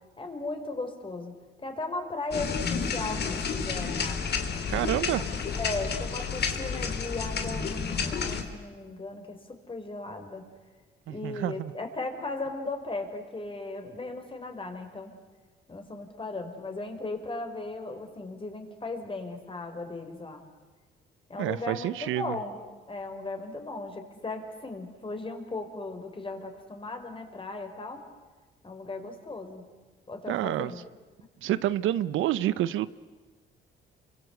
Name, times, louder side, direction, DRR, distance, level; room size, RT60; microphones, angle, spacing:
voice 1, 0.2-4.2 5.1-5.2 5.5-10.5 11.1-15.2 15.7-20.4 21.3-22.6 22.9-28.0 28.6-29.6 30.1-30.8, left 2 dB, 25° left, 5 dB, 4.5 m, -37 dB
sound 1, 2.3-8.4, left 5 dB, 55° left, 2.8 m, -31 dB
voice 2, 4.7-5.2 11.1-11.7 21.4-22.4 30.3-30.7 31.4-32.9, right 13 dB, 85° right, 16 dB, 0.8 m, -28 dB
28.5 x 24.0 x 8.2 m, 1.3 s
cardioid pair, 90°, 20 cm